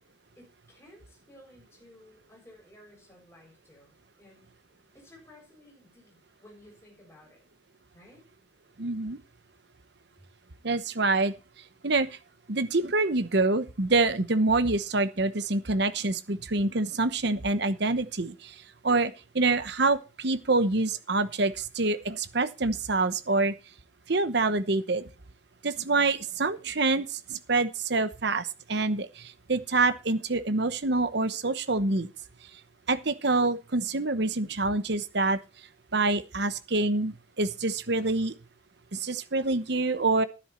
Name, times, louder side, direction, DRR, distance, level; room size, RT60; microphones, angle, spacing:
voice 1, 0.4-4.5 4.9-7.4 7.9-8.2, left 1 dB, 15° left, -1 dB, 7.2 m, -55 dB
voice 2, 8.8-9.2 10.6-11.3 11.8-12.1 12.5-18.5 18.8-23.5 24.1-25.0 25.6-32.1 32.9-35.4 35.9-38.3 38.9-40.2, right 3 dB, 60° right, 12 dB, 1.0 m, -26 dB
11.5 x 10.5 x 4.4 m, 0.30 s
head